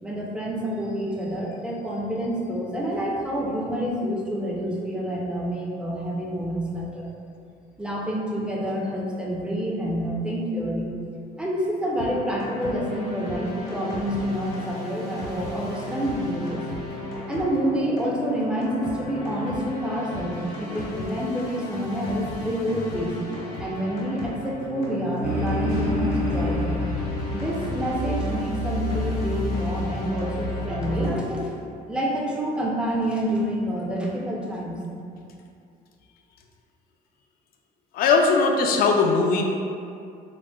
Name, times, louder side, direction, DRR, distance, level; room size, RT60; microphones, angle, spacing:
voice 1, 0.0-7.1 7.8-10.9 11.4-16.6 17.3-23.2 23.6-26.8 27.3-31.5 31.9-34.8, equal, 5° right, -3 dB, 0.5 m, -28 dB
sound 1, 12.0-31.1, left 1 dB, 75° left, 1.0 m, -33 dB
sound 2, 25.2-30.8, equal, 60° right, 0.6 m, -31 dB
voice 2, 37.9-39.4, left 4 dB, 60° left, 2 dB, 0.4 m, -19 dB
3.8 x 2.0 x 2.2 m, 2.4 s
cardioid pair, 110°, 17 cm